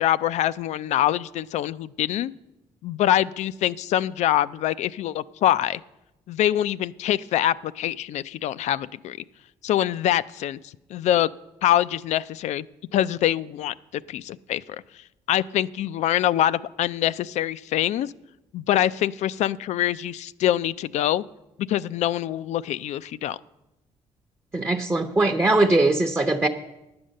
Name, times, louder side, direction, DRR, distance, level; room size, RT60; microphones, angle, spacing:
voice 1, 0.0-2.3 2.8-5.8 6.3-9.2 9.6-10.6 10.9-11.3 11.6-12.6 12.9-13.7 14.1-14.6 15.3-18.1 18.5-21.2 21.7-23.4, left 12 dB, 70° left, 17 dB, 0.4 m, -24 dB
voice 2, 24.5-26.5, right 2 dB, 20° right, 2 dB, 0.8 m, -21 dB
10.0 x 8.8 x 6.4 m, 0.94 s
cardioid pair, 80°, 12 cm